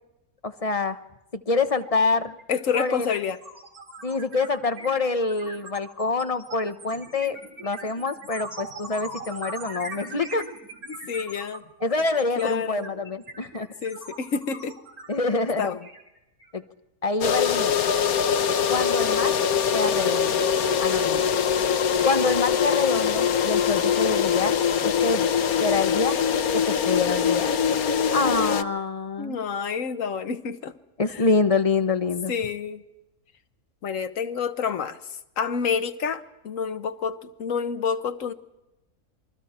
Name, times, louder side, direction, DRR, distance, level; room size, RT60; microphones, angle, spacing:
voice 1, 0.4-1.0 1.5-2.3 2.7-3.1 4.0-7.4 7.6-10.5 11.8-13.7 15.1-15.7 16.5-16.6 17.0-17.8 18.7-19.4 19.7-20.4 20.8-21.3 22.0-24.5 24.8-25.3 25.6-26.2 26.5-27.5 28.1-29.4 31.0-32.3, left 3 dB, 30° left, 9 dB, 1.0 m, -26 dB
sound 1, 1.8-2.0 2.3-16.6, right 2 dB, 90° right, 4.3 m, -41 dB
voice 2, 2.5-3.4 11.1-11.6 12.4-12.9 13.8-14.8 15.6-15.8 29.2-30.7 31.1-31.2 32.3-32.8 33.8-35.0 35.4-38.3, left 6 dB, 65° left, 11 dB, 1.5 m, -28 dB
sound 2, 17.2-28.6, left 7 dB, 90° left, 1.4 m, -23 dB
28.5 x 23.0 x 4.4 m, 0.96 s
omnidirectional pair, 1.5 m